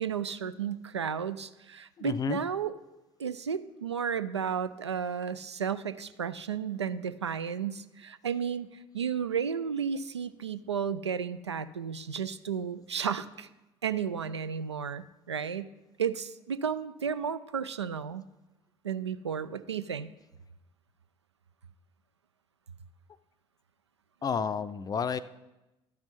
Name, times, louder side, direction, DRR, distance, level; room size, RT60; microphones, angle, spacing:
voice 1, 0.0-2.7 3.2-8.7 8.9-13.5 13.8-15.7 16.0-18.2 18.8-20.1, right 7 dB, 85° right, 14 dB, 0.4 m, -33 dB
voice 2, 2.0-2.4 24.2-25.2, left 6 dB, 25° left, 12 dB, 0.5 m, -31 dB
11.5 x 6.1 x 5.7 m, 0.99 s
figure-of-eight pair, 60°, 14 cm